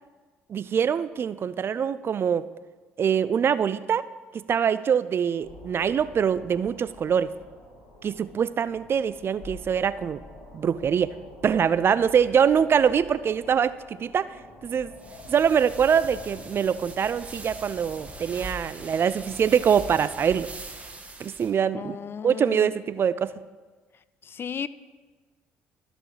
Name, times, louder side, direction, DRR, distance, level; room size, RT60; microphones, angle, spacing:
voice 1, 0.5-2.5 3.0-4.1 4.3-7.3 8.0-10.2 10.5-11.1 11.4-14.3 14.6-14.9 15.3-20.5 21.2-22.0 22.2-23.3, right 7 dB, 40° right, 0.3 m, -24 dB
sound 1, 5.4-20.0, left 2 dB, 75° left, 2.4 m, -48 dB
sound 2, 15.0-21.5, right 3 dB, 20° right, 1.4 m, -42 dB
voice 2, 21.7-22.7 24.2-24.7, left 7 dB, 40° left, 0.3 m, -34 dB
13.0 x 6.2 x 3.3 m
hypercardioid pair, 55°, 6 cm